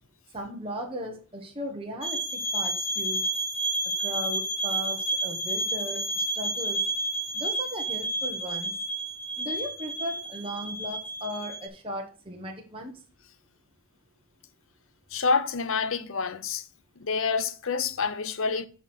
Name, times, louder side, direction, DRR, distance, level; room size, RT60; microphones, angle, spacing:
voice 1, 0.3-3.2 3.8-6.8 7.3-8.7 9.4-13.0, equal, 25° right, 1.2 m, -37 dB
sound 1, 2.0-11.7, right 1 dB, 30° left, 1.5 m, -30 dB
voice 2, 15.1-16.7 17.0-18.7, left 5 dB, 60° left, 0.7 m, -27 dB
8.2 x 5.7 x 4.4 m
head